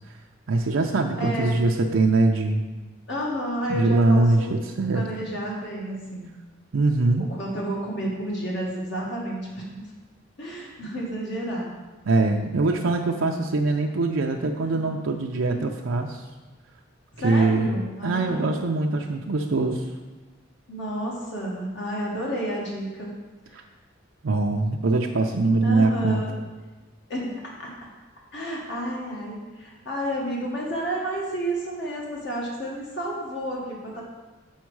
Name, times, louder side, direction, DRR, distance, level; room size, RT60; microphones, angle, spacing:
voice 1, 0.5-2.6 3.7-5.0 6.7-7.3 12.1-16.2 17.2-17.7 18.0-19.9 24.2-26.2, right 3 dB, 85° right, 2 dB, 0.5 m, -22 dB
voice 2, 1.2-1.6 3.1-4.5 4.9-6.3 7.3-9.8 10.4-11.7 14.7-14.9 17.1-18.6 20.7-23.1 25.6-26.3 27.1-27.3 27.6-27.7 28.3-34.0, right 1 dB, 65° left, -3 dB, 1.4 m, -31 dB
7.3 x 4.5 x 4.7 m, 1.2 s
head